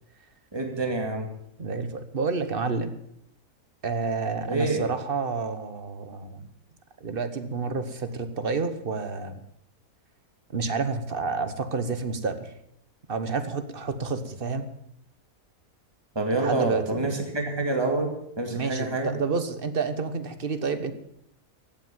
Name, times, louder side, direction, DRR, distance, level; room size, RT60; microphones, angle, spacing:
voice 1, 0.5-1.3 4.5-4.8 16.1-19.1, right 2 dB, 15° right, 2 dB, 2.4 m, -27 dB
voice 2, 1.6-2.9 3.8-6.5 7.0-9.4 10.5-12.5 13.1-14.7 16.3-17.1 18.5-20.9, right 4 dB, 40° right, 10 dB, 1.3 m, -29 dB
15.5 x 8.9 x 7.4 m, 0.74 s
omnidirectional pair, 1.6 m